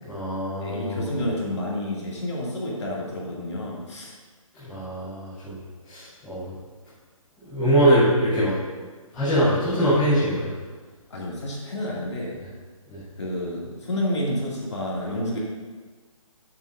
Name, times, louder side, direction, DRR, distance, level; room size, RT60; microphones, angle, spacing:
voice 1, 0.0-1.2 4.5-5.6 5.8-6.5 7.4-8.9 9.1-10.5 12.9-13.0, equal, 5° left, -14 dB, 0.8 m, -23 dB
voice 2, 0.6-4.1 11.1-12.3 13.2-15.4, left 1 dB, 50° left, -4 dB, 2.3 m, -29 dB
12.0 x 7.3 x 2.6 m, 1.4 s
hypercardioid pair, 180°, 18 cm